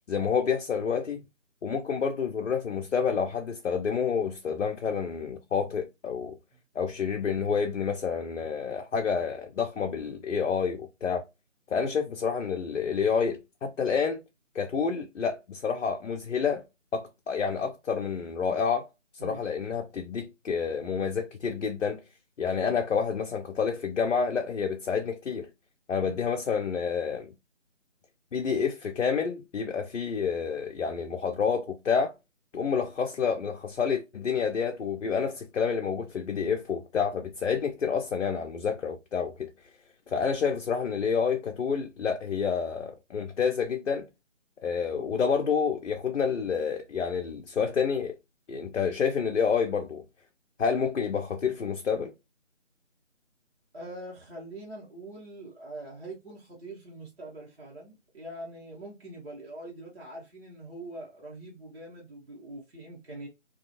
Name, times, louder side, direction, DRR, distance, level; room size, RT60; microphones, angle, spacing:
voice 1, 0.1-1.2 1.6-6.4 6.8-11.2 11.7-14.2 14.5-16.6 16.9-18.9 19.2-22.0 22.4-25.5 25.9-27.3 28.3-32.1 32.5-39.5 40.1-44.1 44.6-48.2 48.5-50.0 50.6-52.1, left 6 dB, 70° left, 0.5 m, -29 dB
voice 2, 53.7-63.3, right 1 dB, 50° right, 1.0 m, -43 dB
2.4 x 2.3 x 2.7 m
figure-of-eight pair, 155°, 38 cm